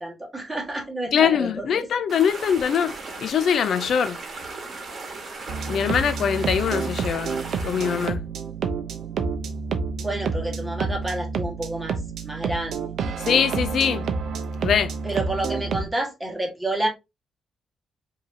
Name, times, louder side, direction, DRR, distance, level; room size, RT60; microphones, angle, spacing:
voice 1, 0.0-1.7 10.0-12.9 15.0-16.9, right 1 dB, 10° right, 1.5 m, -29 dB
voice 2, 1.1-2.9 3.2-4.2 5.7-7.4 7.6-8.2 13.2-14.1 14.6-14.9, left 7 dB, 60° left, 0.5 m, -22 dB
sound 1, 2.1-8.1, right 3 dB, 40° right, 1.3 m, -37 dB
sound 2, 5.5-15.9, right 5 dB, 65° right, 0.6 m, -29 dB
4.8 x 2.8 x 2.7 m
cardioid pair, 130°, 0 cm